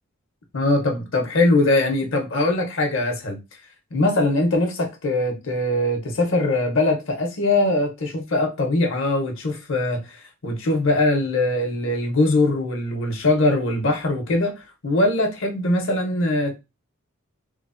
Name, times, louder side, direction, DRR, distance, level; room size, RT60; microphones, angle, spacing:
voice 1, 0.5-3.4 3.9-16.5, left 2 dB, 60° left, 0.7 m, -22 dB
3.0 x 2.0 x 2.4 m
head